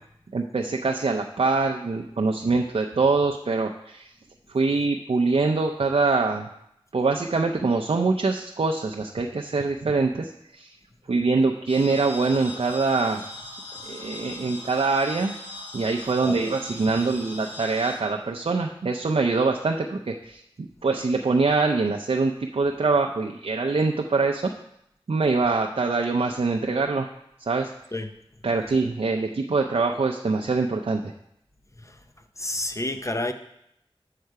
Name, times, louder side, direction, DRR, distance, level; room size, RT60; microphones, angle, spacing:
voice 1, 0.3-4.1 4.5-6.5 6.9-10.7 11.1-13.2 13.9-15.3 15.7-20.4 20.8-24.5 25.1-27.1 27.5-27.7 28.4-31.1, right 3 dB, 75° right, 1 dB, 0.5 m, -24 dB
sound 1, 11.7-18.0, left 2 dB, 75° left, 3.3 m, -40 dB
voice 2, 32.4-33.3, left 1 dB, 30° left, 8 dB, 0.7 m, -28 dB
7.7 x 6.5 x 4.7 m, 0.78 s
wide cardioid pair, 50°, 10 cm